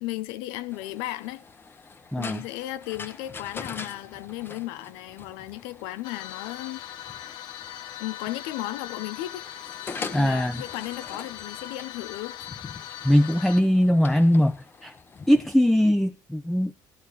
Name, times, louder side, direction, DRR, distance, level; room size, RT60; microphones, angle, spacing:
voice 1, 0.0-1.4 2.2-6.8 8.0-9.5 10.0-12.4, left 16 dB, 90° left, 0.7 m, -35 dB
sound 1, 0.7-15.6, left 4 dB, 25° left, 1.1 m, -43 dB
sound 2, 6.0-13.6, left 11 dB, 75° left, 1.2 m, -40 dB
voice 2, 10.1-10.6 13.0-14.5 14.8-14.9 15.3-16.8, equal, 5° left, 0.5 m, -21 dB
13.0 x 11.5 x 4.8 m
cardioid pair, 110°, 8 cm